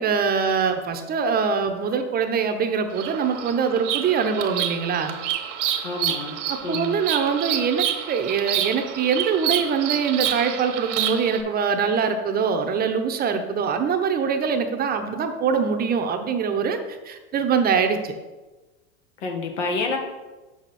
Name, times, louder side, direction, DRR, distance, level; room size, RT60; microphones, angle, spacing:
voice 1, 0.0-5.2 6.5-16.8 17.0-18.1, right 6 dB, 25° right, 6 dB, 0.7 m, -23 dB
Bird vocalization bird call bird song, 2.9-11.4, right 10 dB, 75° right, 1.1 m, -28 dB
voice 2, 5.6-7.0 19.2-20.0, left 4 dB, 85° left, 2 dB, 1.7 m, -29 dB
7.3 x 6.2 x 4.2 m, 1.2 s
supercardioid pair, 125°, 35 cm